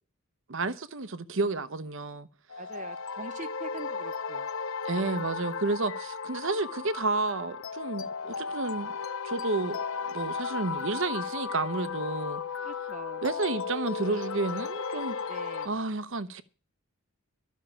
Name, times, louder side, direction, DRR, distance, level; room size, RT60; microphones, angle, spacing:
voice 1, 0.5-2.3 4.8-8.9 9.2-12.4 13.2-15.2 15.6-16.4, right 3 dB, 60° right, 0.9 m, -31 dB
sound 1, 2.5-15.7, left 5 dB, 65° left, 0.6 m, -35 dB
voice 2, 2.6-4.5 5.0-5.2 12.6-13.2 15.3-15.8, right 3 dB, 35° right, 0.5 m, -44 dB
12.5 x 6.4 x 8.6 m
head